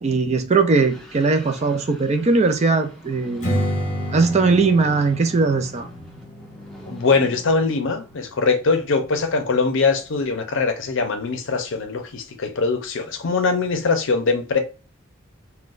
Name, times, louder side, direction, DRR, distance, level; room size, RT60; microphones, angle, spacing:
voice 1, 0.0-3.7 4.1-5.9, right 4 dB, 30° right, 0.4 m, -19 dB
sound 1, 0.8-10.1, right 1 dB, 5° left, 0.8 m, -44 dB
Strum, 3.4-8.6, equal, 35° left, 0.9 m, -31 dB
voice 2, 6.9-14.6, left 4 dB, 60° left, 0.6 m, -22 dB
3.8 x 2.2 x 2.4 m
head